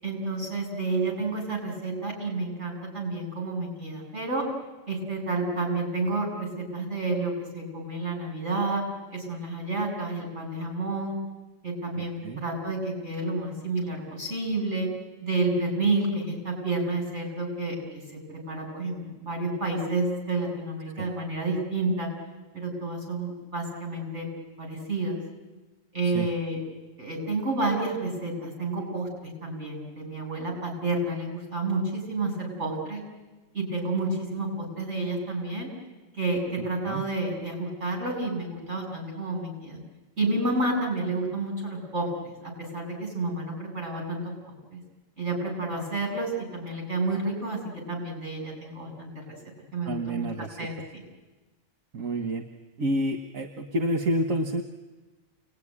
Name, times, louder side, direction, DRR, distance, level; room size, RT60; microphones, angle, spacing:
voice 1, 0.0-4.5 4.9-8.8 9.1-11.2 11.6-14.9 15.2-22.1 22.5-24.3 24.6-25.2 25.9-26.6 27.0-33.0 33.5-35.7 36.1-39.8 40.2-44.8 45.2-47.6 47.9-49.2 49.7-50.2 50.6-51.0, right 2 dB, 55° right, 0 dB, 7.7 m, -30 dB
voice 2, 12.0-12.4 21.0-21.1 26.0-26.3 36.9-37.0 49.9-50.7 51.9-52.4 52.8-54.6, right 1 dB, 80° right, 5 dB, 1.7 m, -29 dB
29.0 x 20.5 x 9.9 m, 1.2 s
omnidirectional pair, 1.4 m